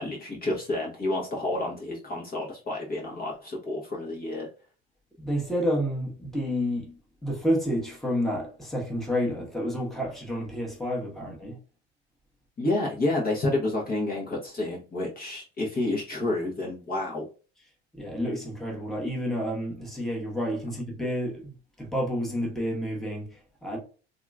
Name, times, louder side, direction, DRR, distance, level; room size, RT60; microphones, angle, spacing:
voice 1, 0.0-4.5 12.6-17.2, left 2 dB, 30° left, 0.9 m, -29 dB
voice 2, 5.2-11.6 17.9-23.8, equal, ahead, 1.1 m, -30 dB
2.8 x 2.5 x 2.3 m
hypercardioid pair, 75°, 33 cm